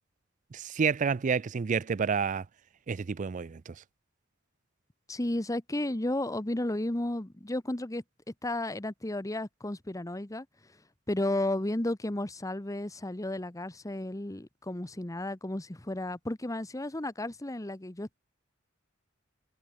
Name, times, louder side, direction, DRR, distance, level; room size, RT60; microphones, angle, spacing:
voice 1, 0.5-2.4 2.9-3.7, right 6 dB, 40° right, 0.4 m, -29 dB
voice 2, 5.1-8.0 8.4-10.5 11.1-18.2, left 1 dB, 15° left, 1.0 m, -33 dB
head